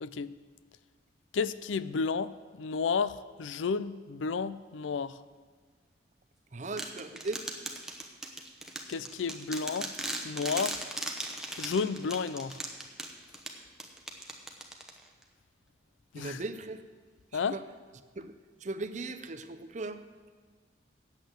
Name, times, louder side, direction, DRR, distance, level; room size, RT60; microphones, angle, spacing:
voice 1, 0.0-0.3 1.3-5.2 8.9-9.9 10.2-10.8 11.6-12.6 16.1-16.4 17.3-17.6, left 5 dB, 85° left, 16 dB, 0.4 m, -32 dB
voice 2, 6.5-7.4 16.1-16.8 17.3-17.6 18.2-18.3 18.6-20.0, right 2 dB, 40° right, 10 dB, 0.6 m, -38 dB
sound 1, 6.8-15.2, right 1 dB, 5° right, 0.8 m, -39 dB
8.3 x 8.2 x 7.9 m, 1.5 s
head